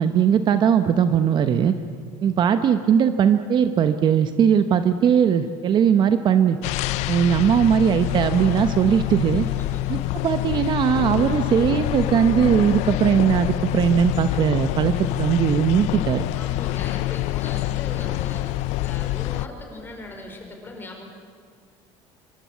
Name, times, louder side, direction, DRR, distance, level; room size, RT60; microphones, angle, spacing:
voice 1, 0.0-1.7 2.2-6.6 7.1-9.5 9.9-16.2, right 8 dB, 40° right, 10 dB, 1.0 m, -19 dB
sound 1, 6.6-19.5, left 18 dB, 65° left, 0.7 m, -26 dB
voice 2, 7.1-7.5 9.4-9.8 16.3-18.4 18.8-21.0, left 2 dB, 15° left, 2 dB, 5.3 m, -39 dB
25.0 x 24.0 x 8.5 m, 2.1 s
cardioid pair, 145°, 13 cm